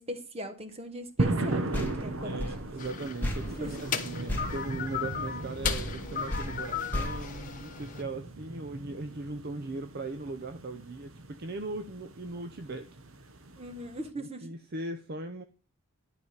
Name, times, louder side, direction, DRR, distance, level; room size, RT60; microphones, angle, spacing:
voice 1, 0.0-2.5 3.6-3.9 13.6-14.5, equal, 30° right, 1.4 m, -40 dB
sound 1, 1.2-14.1, right 2 dB, 65° right, 1.1 m, -37 dB
sound 2, 1.7-5.4 5.6-8.1, left 1 dB, 10° left, 1.7 m, -36 dB
voice 2, 2.2-12.9 13.2-13.3 14.2-15.4, right 2 dB, 45° right, 0.7 m, -39 dB
sound 3, 2.8-8.0, left 7 dB, 35° left, 1.2 m, -36 dB
11.5 x 5.0 x 8.1 m
head